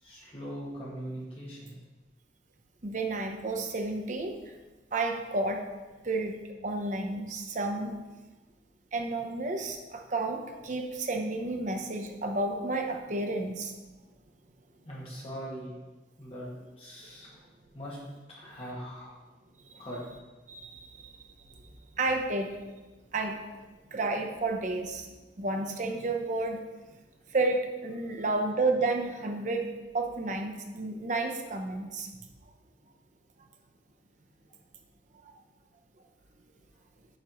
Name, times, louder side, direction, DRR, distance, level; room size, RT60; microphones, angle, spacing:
voice 1, 0.0-1.7 14.8-15.8 16.2-16.5 16.8-17.4 17.7-18.0 18.3-19.1 19.8-20.0 28.1-28.3, equal, 30° left, -6 dB, 2.0 m, -41 dB
voice 2, 2.8-4.5 4.9-5.6 6.0-6.4 6.6-7.9 8.9-13.7 19.6-19.7 20.5-21.1 22.0-22.5 23.1-23.4 23.9-25.1 25.4-26.6 27.3-29.7 29.9-32.1 35.2-35.3, right 2 dB, 40° right, 3 dB, 0.7 m, -31 dB
8.9 x 5.0 x 3.0 m, 1.2 s
head